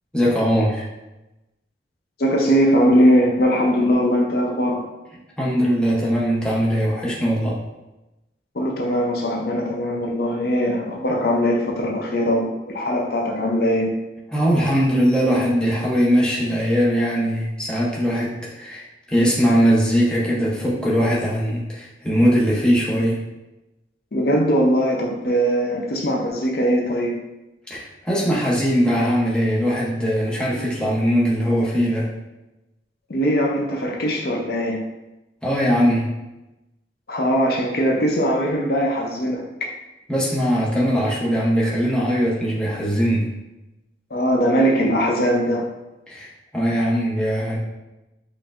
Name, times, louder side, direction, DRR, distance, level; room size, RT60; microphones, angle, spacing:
voice 1, 0.1-0.8 5.4-7.6 14.3-23.2 27.7-32.1 35.4-36.1 40.1-43.3 46.1-47.6, equal, 5° left, -5 dB, 0.6 m, -20 dB
voice 2, 2.2-4.9 8.5-13.9 24.1-27.2 33.1-34.8 37.1-39.5 44.1-45.6, equal, 55° left, 0 dB, 0.5 m, -20 dB
4.2 x 3.2 x 2.4 m, 0.98 s
head